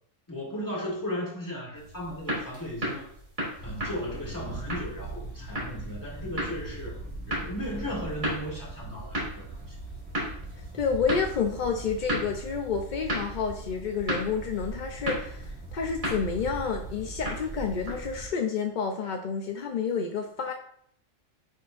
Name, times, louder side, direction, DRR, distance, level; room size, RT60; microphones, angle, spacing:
voice 1, 0.3-3.1 3.6-7.0 7.3-9.8, equal, 15° left, -5 dB, 2.1 m, -36 dB
sound 1, 1.7-18.2, equal, 60° right, 3.3 m, -36 dB
sound 2, 3.6-18.3, right 2 dB, 10° right, 1.4 m, -40 dB
voice 2, 10.7-20.5, left 6 dB, 60° left, 4 dB, 0.5 m, -29 dB
10.0 x 4.3 x 2.5 m, 0.64 s
omnidirectional pair, 1.3 m